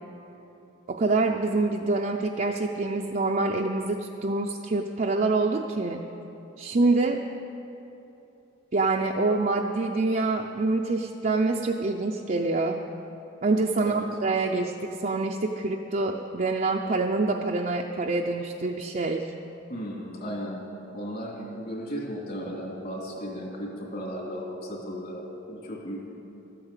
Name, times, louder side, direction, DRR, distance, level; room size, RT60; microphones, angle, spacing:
voice 1, 0.9-6.0 6.6-7.2 8.7-12.8 13.4-19.2, right 3 dB, 40° right, 1 dB, 0.5 m, -26 dB
voice 2, 19.7-20.6 20.9-26.0, equal, 50° left, -2 dB, 2.6 m, -35 dB
13.0 x 8.7 x 8.2 m, 3.0 s
head